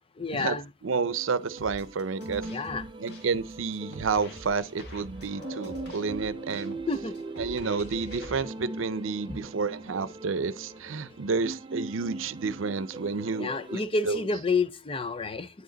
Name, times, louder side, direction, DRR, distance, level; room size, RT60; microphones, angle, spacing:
voice 1, 0.2-0.7 2.5-2.9 6.9-7.2 9.3-9.4 13.4-15.5, left 3 dB, 25° left, 0.5 m, -29 dB
voice 2, 0.8-2.5 3.0-6.8 7.4-13.8 14.1-14.3, right 4 dB, 80° right, 0.6 m, -30 dB
sound 1, 0.9-13.9, right 2 dB, 25° right, 0.4 m, -41 dB
sound 2, 1.6-8.4, equal, 55° left, 2.1 m, -46 dB
sound 3, 2.9-14.1, left 1 dB, 90° left, 5.7 m, -51 dB
9.6 x 5.1 x 3.9 m
head